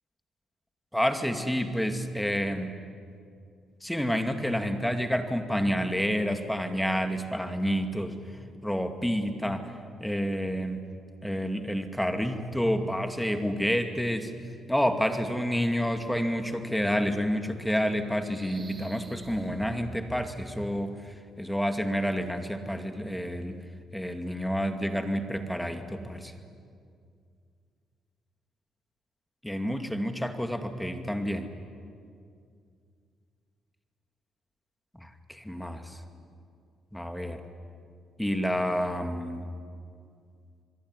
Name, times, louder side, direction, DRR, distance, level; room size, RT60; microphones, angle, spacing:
voice 1, 0.9-2.7 3.8-8.2 8.6-9.7 10.0-10.8 11.2-14.3 14.7-23.6 23.9-26.3 29.4-31.5 34.9-36.0 36.9-37.4 38.2-39.5, equal, 5° left, 7 dB, 2.4 m, -29 dB
sound 1, 18.0-20.8, right 3 dB, 30° right, 3.1 m, -48 dB
26.5 x 21.5 x 9.7 m, 2.3 s
cardioid pair, 90°, 0 cm